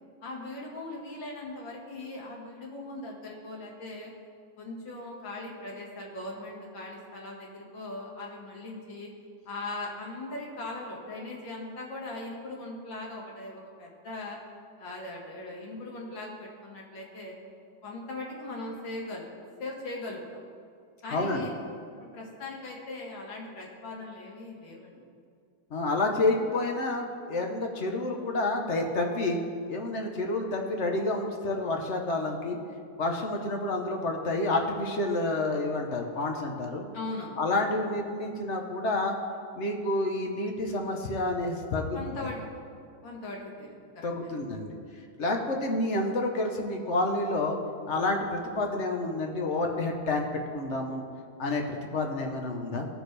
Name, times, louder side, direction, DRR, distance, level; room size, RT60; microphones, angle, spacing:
voice 1, 0.2-4.1 4.6-9.1 9.5-14.4 14.8-17.4 17.8-19.3 19.6-20.4 21.0-21.6 22.1-25.0 36.9-37.4 41.9-42.4 43.0-44.1 44.5-44.6 45.4-45.6, left 2 dB, 70° left, -2 dB, 2.4 m, -39 dB
voice 2, 21.1-21.4 25.7-29.4 29.7-32.6 33.0-36.8 37.4-39.2 39.6-42.0 44.0-44.8 45.2-47.6 47.9-50.3 50.5-51.0 51.4-52.9, left 2 dB, 55° left, 2 dB, 0.8 m, -29 dB
17.0 x 6.3 x 3.3 m, 2.3 s
omnidirectional pair, 2.2 m